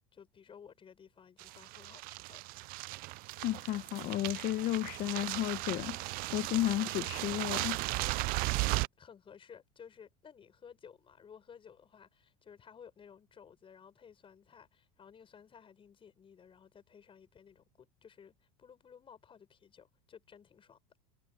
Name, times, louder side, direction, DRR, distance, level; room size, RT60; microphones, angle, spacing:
voice 1, 0.1-2.4 9.0-20.8, left 7 dB, 30° left, 7.0 m, -56 dB
sound 1, 1.4-8.9, right 23 dB, 50° right, 0.5 m, -36 dB
voice 2, 3.4-7.8, left 14 dB, 50° left, 1.4 m, -33 dB
supercardioid pair, 110°, 19 cm